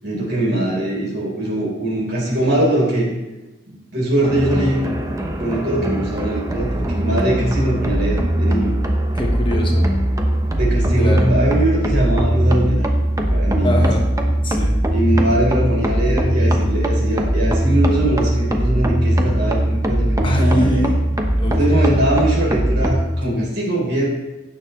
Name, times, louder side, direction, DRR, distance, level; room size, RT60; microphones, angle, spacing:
voice 1, 0.0-3.1 3.7-8.7 10.6-13.9 14.9-20.9 21.5-24.1, right 1 dB, 60° right, -3 dB, 3.8 m, -21 dB
sound 1, 4.2-23.0, right 1 dB, 20° right, 0.9 m, -19 dB
voice 2, 9.1-9.9 11.0-11.3 13.6-14.0 14.4-14.7 20.2-21.0 21.4-21.9 23.2-23.5, equal, 25° left, 1 dB, 1.3 m, -23 dB
16.0 x 6.7 x 3.2 m, 1.1 s
head